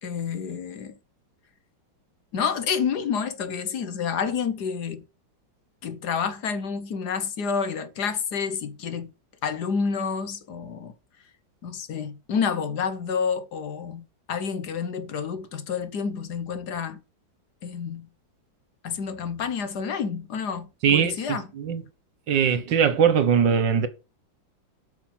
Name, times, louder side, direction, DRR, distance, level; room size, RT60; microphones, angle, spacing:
voice 1, 0.0-1.0 2.3-5.0 5.8-9.1 9.4-10.9 11.6-17.0 17.6-18.1 18.8-21.5, left 6 dB, 60° left, 1.6 m, -29 dB
voice 2, 20.8-21.8 22.3-23.9, right 7 dB, 70° right, 1.9 m, -21 dB
8.8 x 5.8 x 7.6 m
omnidirectional pair, 2.0 m